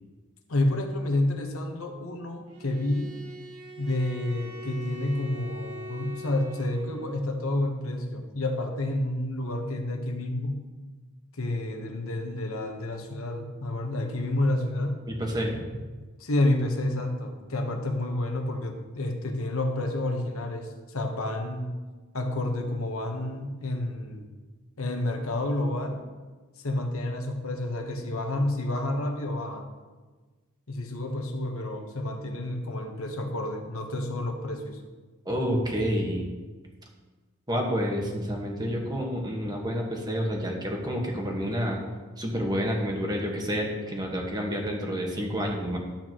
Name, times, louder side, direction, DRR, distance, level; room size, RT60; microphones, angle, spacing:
voice 1, 0.5-3.1 3.8-10.6 11.3-15.0 16.2-21.7 22.1-24.3 24.8-26.0 26.6-29.7 30.7-34.8, left 1 dB, 70° left, 4 dB, 1.1 m, -29 dB
Bowed string instrument, 2.5-7.2, equal, 85° right, 1.0 m, -42 dB
voice 2, 15.1-15.6 35.2-36.3 37.5-41.8 42.2-45.8, equal, 20° right, 0 dB, 1.4 m, -29 dB
12.0 x 8.6 x 3.0 m, 1.3 s
head